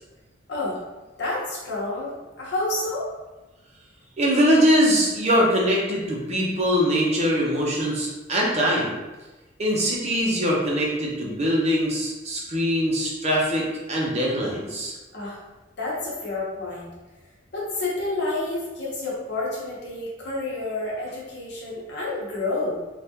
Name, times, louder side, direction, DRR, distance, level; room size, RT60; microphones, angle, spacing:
voice 1, 0.5-0.8 1.2-3.1 15.1-15.4 15.8-16.9 17.5-22.8, left 2 dB, 60° left, -5 dB, 1.0 m, -29 dB
voice 2, 4.2-8.9 9.6-14.9, equal, 35° right, -3 dB, 0.7 m, -22 dB
3.4 x 2.4 x 2.8 m, 1.1 s
head